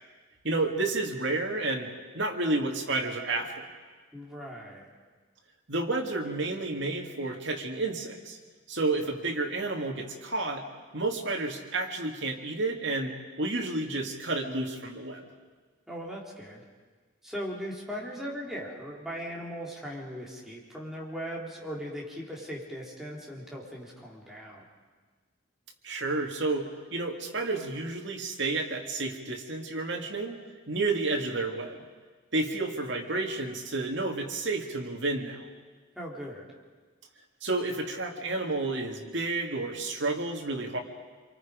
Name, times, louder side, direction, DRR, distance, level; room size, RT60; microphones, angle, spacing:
voice 1, 0.4-3.6 5.7-8.4 8.7-10.6 10.9-15.2 25.8-31.8 32.3-35.5 37.4-40.8, right 2 dB, 65° right, 2 dB, 2.4 m, -31 dB
voice 2, 4.1-4.9 15.9-16.6 17.2-24.7 36.0-36.5, equal, ahead, -4 dB, 3.9 m, -39 dB
28.0 x 23.5 x 5.2 m, 1.4 s
head